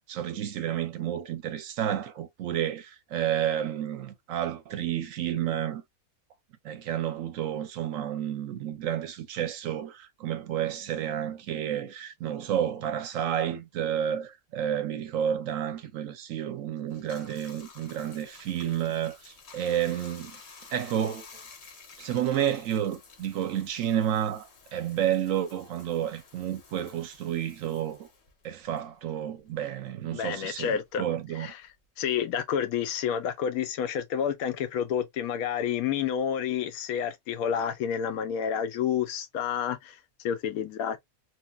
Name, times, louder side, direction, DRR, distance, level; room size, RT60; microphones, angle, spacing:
voice 1, 0.1-5.8 6.6-20.4 20.7-21.3 22.0-28.1 28.4-31.5, right 10 dB, 70° right, 0.9 m, -30 dB
Bathtub (filling or washing), 16.9-29.7 30.0-31.9, left 5 dB, 55° left, 1.0 m, -52 dB
voice 2, 30.1-31.0 31.4-31.6 32.0-41.0, left 8 dB, 75° left, 1.0 m, -29 dB
3.0 x 2.7 x 2.2 m
omnidirectional pair, 1.5 m